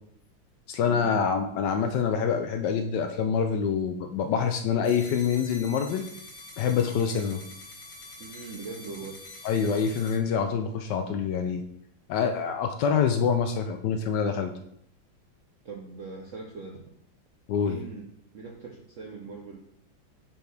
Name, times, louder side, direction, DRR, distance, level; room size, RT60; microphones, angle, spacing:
voice 1, 0.7-6.0 6.6-7.4 9.4-11.6 12.1-14.5 17.5-17.8, left 6 dB, 70° left, 6 dB, 1.1 m, -26 dB
sound 1, 4.8-10.2, left 2 dB, 45° left, 1.9 m, -45 dB
voice 2, 8.2-9.2 15.6-16.8 17.6-19.6, right 4 dB, 65° right, 0 dB, 0.7 m, -41 dB
7.2 x 4.5 x 3.3 m, 0.71 s
omnidirectional pair, 2.2 m